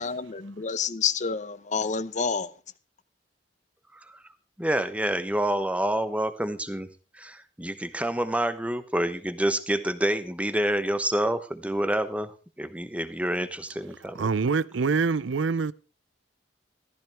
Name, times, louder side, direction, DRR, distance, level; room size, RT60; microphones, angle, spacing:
voice 1, 0.0-2.5, left 5 dB, 40° left, 0.7 m, -28 dB
voice 2, 4.6-6.9 7.1-14.3, right 1 dB, 5° right, 0.9 m, -28 dB
voice 3, 14.0-15.7, right 4 dB, 85° right, 0.5 m, -26 dB
14.5 x 13.5 x 3.5 m
head